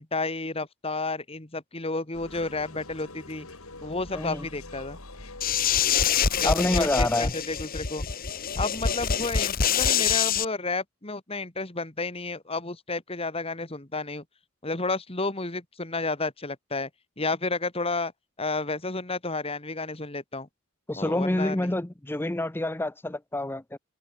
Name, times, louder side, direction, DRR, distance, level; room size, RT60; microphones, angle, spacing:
voice 1, 0.0-3.5 3.8-5.0 6.4-8.0 8.6-14.2 14.6-16.9 17.2-18.1 18.4-20.5 21.0-21.6, left 3 dB, 30° left, 2.2 m, -31 dB
sound 1, 2.1-7.1, left 2 dB, 90° left, 6.1 m, -44 dB
voice 2, 4.1-4.5 6.4-7.3 20.9-23.8, left 1 dB, 10° left, 0.6 m, -27 dB
sound 2, 5.4-10.5, left 7 dB, 45° left, 1.4 m, -25 dB
head